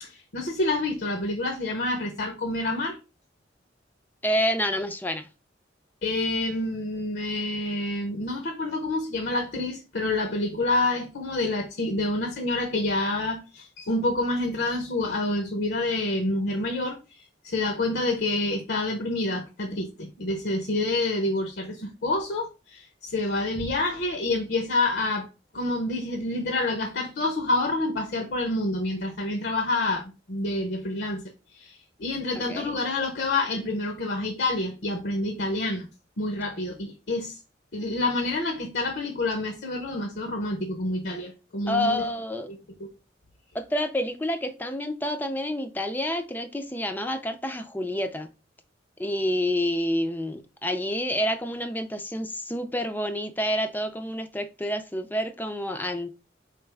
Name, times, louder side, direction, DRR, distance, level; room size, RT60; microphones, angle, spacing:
voice 1, 0.0-3.0 6.0-25.3 25.5-31.2 31.5-35.9 36.2-37.4 37.7-42.0 42.5-42.9, left 2 dB, 60° left, 0.6 m, -28 dB
voice 2, 4.2-5.3 32.5-32.7 41.7-42.5 43.5-48.3 49.0-56.1, equal, 10° left, 0.4 m, -28 dB
4.4 x 3.4 x 3.3 m
head